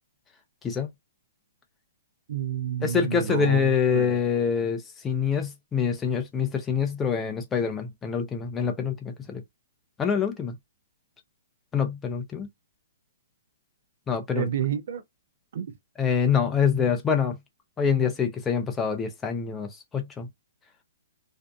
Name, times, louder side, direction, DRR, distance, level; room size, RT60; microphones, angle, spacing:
voice 1, 2.3-4.2 14.3-15.0 15.5-15.7, right 8 dB, 60° right, 0.4 m, -30 dB
voice 2, 2.8-9.4 10.0-10.5 11.7-12.5 14.1-14.5 16.0-17.4 17.8-20.3, left 6 dB, 10° left, 0.5 m, -25 dB
2.6 x 2.4 x 2.2 m
hypercardioid pair, 165°, 0 cm